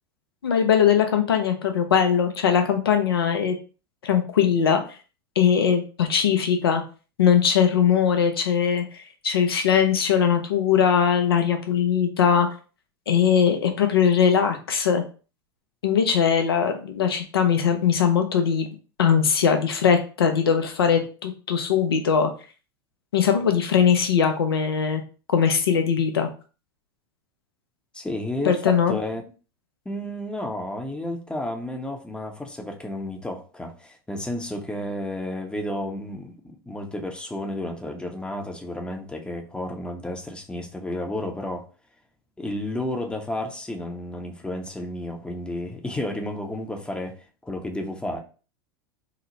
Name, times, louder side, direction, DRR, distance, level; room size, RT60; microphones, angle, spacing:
voice 1, 0.4-3.6 4.0-4.8 5.4-6.8 7.2-8.8 9.2-12.5 13.1-15.0 15.8-18.7 19.0-22.3 23.1-25.0 25.3-26.3 28.4-28.9, left 7 dB, 90° left, 0.5 m, -20 dB
voice 2, 27.9-29.2 29.9-41.7 42.4-48.2, left 1 dB, 10° left, 0.6 m, -32 dB
3.0 x 2.0 x 3.8 m
hypercardioid pair, 95°, 12 cm